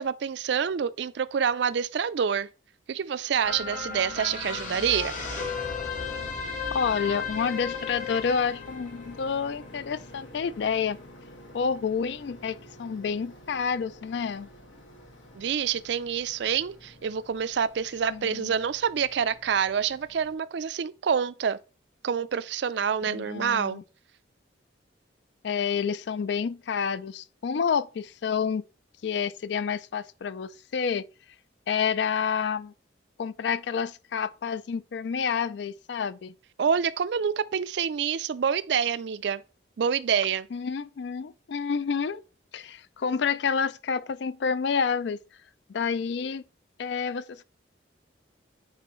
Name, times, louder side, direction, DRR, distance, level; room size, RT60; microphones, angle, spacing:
voice 1, 0.0-2.5 2.9-5.1 15.4-21.6 22.0-23.8 36.6-39.4 39.8-40.5, right 7 dB, 65° right, 0.4 m, -27 dB
sound 1, 3.4-20.3, left 1 dB, 85° left, 1.6 m, -48 dB
sound 2, 3.4-10.1 10.5-10.6, left 5 dB, 45° left, 1.4 m, -35 dB
voice 2, 6.7-11.0 11.5-14.5 18.1-18.5 23.1-23.8 25.4-28.6 29.0-31.1 31.7-32.7 33.2-36.3 40.5-42.2 42.5-45.2 45.7-46.4 46.8-47.4, left 6 dB, 65° left, 0.4 m, -29 dB
9.3 x 4.1 x 3.0 m
head